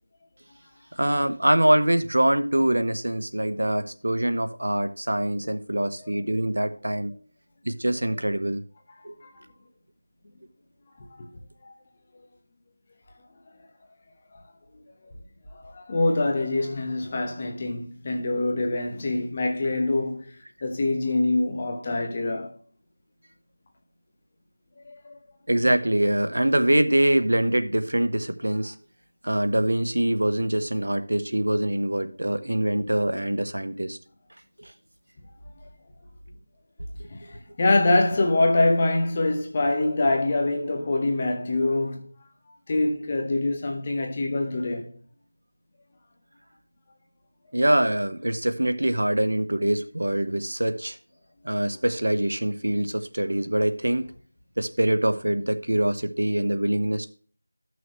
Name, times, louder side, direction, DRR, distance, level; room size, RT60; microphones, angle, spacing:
voice 1, 1.0-7.1 7.6-8.6 9.0-9.1 25.5-28.7 29.2-34.0 34.6-34.7 47.5-51.0 51.4-54.1 54.6-57.1, right 1 dB, 85° right, 1.0 m, -24 dB
voice 2, 15.5-20.3 20.6-22.6 24.8-25.2 37.1-42.3 42.7-44.9, left 2 dB, 20° left, 1.0 m, -25 dB
12.5 x 6.2 x 3.0 m
figure-of-eight pair, 180°, 0 cm